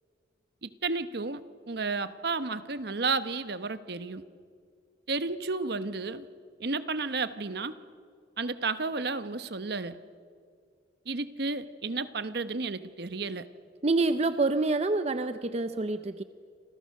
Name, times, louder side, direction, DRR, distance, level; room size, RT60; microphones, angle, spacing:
voice 1, 0.6-1.4 1.7-4.2 5.1-6.3 6.6-7.7 8.4-10.0 11.1-13.5, right 3 dB, 60° right, 12 dB, 1.0 m, -32 dB
voice 2, 13.8-16.2, right 3 dB, 35° right, 10 dB, 0.6 m, -27 dB
28.5 x 26.5 x 6.5 m, 2.2 s
head